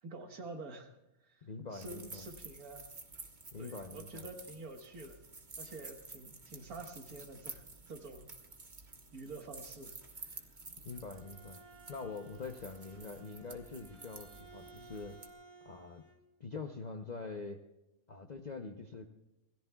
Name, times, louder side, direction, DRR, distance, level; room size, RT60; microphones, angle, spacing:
voice 1, 0.0-0.9 1.2-2.9 3.6-5.2 5.6-7.6 7.9-8.3 9.1-10.5, right 2 dB, 80° right, 4 dB, 2.0 m, -48 dB
voice 2, 1.4-2.3 3.5-4.3 10.8-11.6 11.9-15.1 15.6-16.0 16.4-17.6 18.1-19.1, left 4 dB, 35° left, 4 dB, 0.8 m, -44 dB
sound 1, 1.7-15.3, right 3 dB, 35° right, 1.5 m, -51 dB
Bowed string instrument, 10.7-16.2, right 3 dB, 65° right, 2.7 m, -58 dB
27.0 x 18.0 x 2.3 m, 0.96 s
omnidirectional pair, 1.5 m